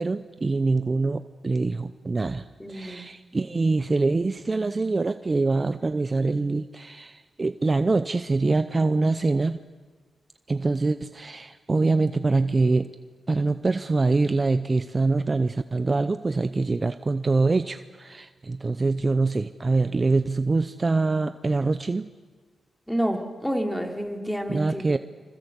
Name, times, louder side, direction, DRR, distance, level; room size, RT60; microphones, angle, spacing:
voice 1, 0.0-9.6 10.5-12.9 13.3-22.1 24.5-25.0, right 3 dB, 30° right, 11 dB, 0.7 m, -24 dB
voice 2, 2.6-3.1 22.9-25.0, equal, 5° left, 3 dB, 3.2 m, -29 dB
26.5 x 25.5 x 8.2 m, 1.5 s
cardioid pair, 95°, 0 cm